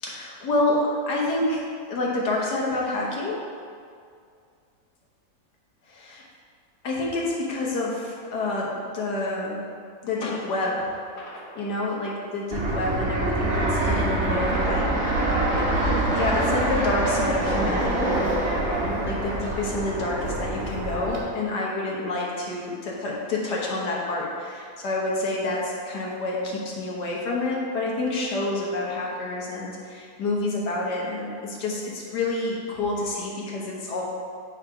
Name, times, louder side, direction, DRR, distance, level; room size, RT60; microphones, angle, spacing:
voice 1, 0.0-3.4 5.9-6.2 6.8-9.6 10.0-10.9 11.2-15.2 15.5-18.2 18.9-34.0, left 2 dB, 80° left, -3 dB, 1.7 m, -28 dB
Fixed-wing aircraft airplane, 12.5-21.2, right 2 dB, 45° right, 1.3 m, -25 dB
8.6 x 3.6 x 4.7 m, 2.2 s
omnidirectional pair, 1.7 m